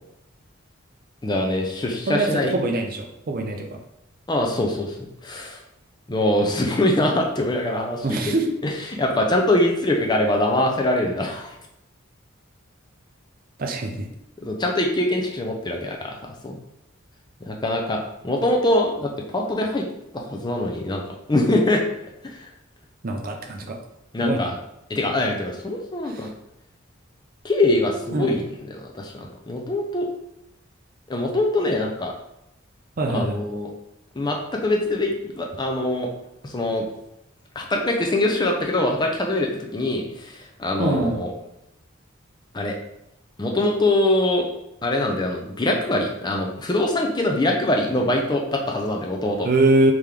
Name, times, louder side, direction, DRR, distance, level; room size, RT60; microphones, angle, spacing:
voice 1, 1.2-2.5 4.3-4.9 5.2-5.6 6.1-8.4 8.6-11.5 14.4-16.2 16.4-16.6 17.5-19.9 20.1-21.0 21.3-21.8 22.2-22.5 24.1-24.5 24.9-26.3 27.4-28.5 28.8-30.1 31.1-32.1 33.1-33.7 34.2-36.1 36.4-36.8 37.6-41.3 42.5-42.7 43.4-44.5 44.8-49.5, left 1 dB, 20° left, 1 dB, 0.5 m, -23 dB
voice 2, 2.1-3.8 8.0-8.5 13.6-14.1 23.0-23.8 24.2-24.5 26.1-26.3 28.1-28.4 33.0-33.4 40.8-41.3 49.4-49.9, right 2 dB, 45° right, 3 dB, 0.5 m, -23 dB
3.7 x 3.0 x 3.3 m, 0.84 s
head